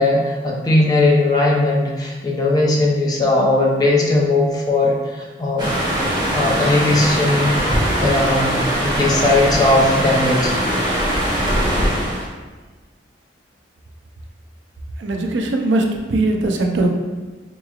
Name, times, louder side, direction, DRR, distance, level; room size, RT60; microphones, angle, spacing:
voice 1, 0.0-5.7 6.3-7.6 8.0-10.5, left 2 dB, 20° left, -2 dB, 0.6 m, -18 dB
sound 1, 5.6-12.3, equal, 25° right, 0.8 m, -21 dB
voice 2, 15.0-16.9, right 2 dB, 80° right, 3 dB, 0.5 m, -20 dB
4.5 x 3.0 x 2.3 m, 1.3 s
head